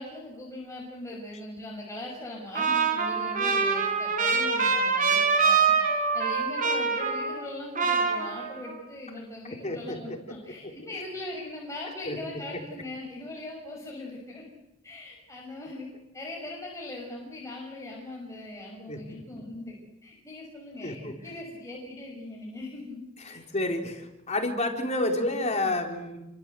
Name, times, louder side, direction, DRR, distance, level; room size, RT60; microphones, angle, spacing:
voice 1, 0.0-5.7 6.1-14.4 14.8-15.9 16.1-19.8 20.0-23.0 23.3-23.4, left 2 dB, 15° left, -2 dB, 6.2 m, -40 dB
Trumpet, 2.5-7.5 7.7-8.8, right 5 dB, 40° right, 5.2 m, -25 dB
voice 2, 9.6-10.5 12.0-12.2 18.9-19.2 20.8-21.1 23.2-26.3, left 1 dB, 35° left, 3 dB, 4.4 m, -30 dB
29.5 x 25.0 x 8.0 m, 0.93 s
head